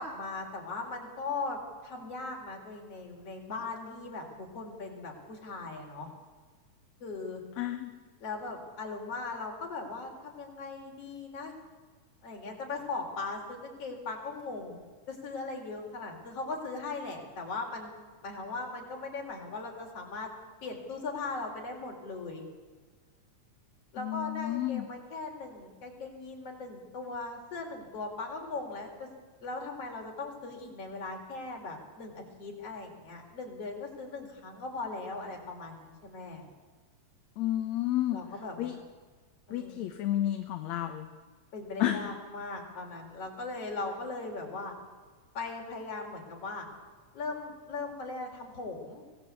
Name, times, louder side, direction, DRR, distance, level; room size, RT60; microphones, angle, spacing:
voice 1, 0.0-6.1 7.0-7.4 8.2-11.5 12.2-14.8 15.1-17.9 18.2-20.3 20.6-22.4 23.9-29.1 29.4-36.5 38.1-38.8 39.5-39.9 41.5-44.7 45.3-46.7 47.1-49.0, left 3 dB, 55° left, 1 dB, 5.2 m, -39 dB
voice 2, 7.6-7.9 24.0-24.8 37.4-38.2 38.6-38.7 39.5-41.1 41.8-42.1, left 13 dB, 70° left, 6 dB, 2.4 m, -31 dB
25.0 x 17.5 x 8.4 m, 1.4 s
omnidirectional pair, 3.4 m